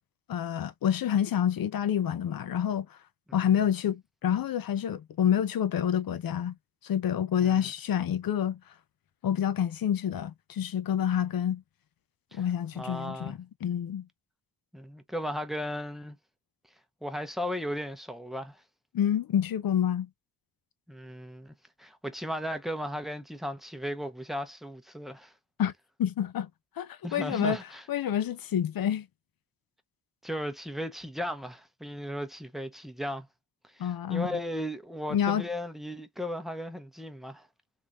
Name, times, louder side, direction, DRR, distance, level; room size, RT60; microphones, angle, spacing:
voice 1, 0.3-2.9 3.3-6.5 6.8-8.6 9.2-11.6 12.3-14.0 18.9-20.1 25.6-25.7 26.0-26.5 26.8-27.6 27.9-29.1 33.8-34.3 35.1-35.4, left 9 dB, 60° left, 0.7 m, -28 dB
voice 2, 12.7-13.4 14.7-16.2 17.0-18.6 20.9-25.3 27.0-27.9 30.2-33.3 33.7-37.5, equal, ahead, 0.8 m, -36 dB
3.7 x 3.0 x 2.5 m
cardioid pair, 85°, 41 cm